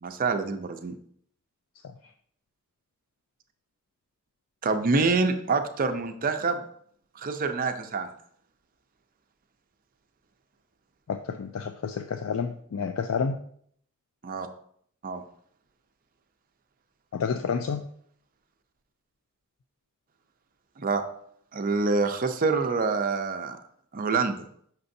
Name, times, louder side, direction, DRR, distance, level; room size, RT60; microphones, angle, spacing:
voice 1, 0.0-0.9 4.6-6.6 7.2-8.1 14.2-14.5 15.0-15.2 20.8-21.0 21.5-23.6 23.9-24.4, right 4 dB, 45° right, 7 dB, 0.5 m, -26 dB
voice 2, 11.1-13.4 17.1-17.8, left 6 dB, 80° left, 8 dB, 0.4 m, -29 dB
6.7 x 5.9 x 2.6 m, 0.64 s
head